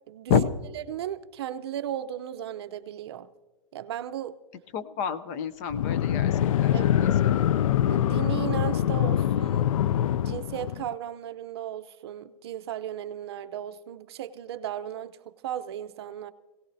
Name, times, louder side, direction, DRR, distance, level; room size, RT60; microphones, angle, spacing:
voice 1, 0.9-3.3 3.7-4.4 6.7-6.8 7.9-9.7 10.2-16.3, right 11 dB, 50° right, 0.7 m, -35 dB
voice 2, 4.7-7.6, left 6 dB, 30° left, 0.6 m, -29 dB
sound 1, 5.7-10.9, left 10 dB, 85° left, 0.4 m, -24 dB
24.5 x 17.5 x 2.7 m
hypercardioid pair, 165°, 17 cm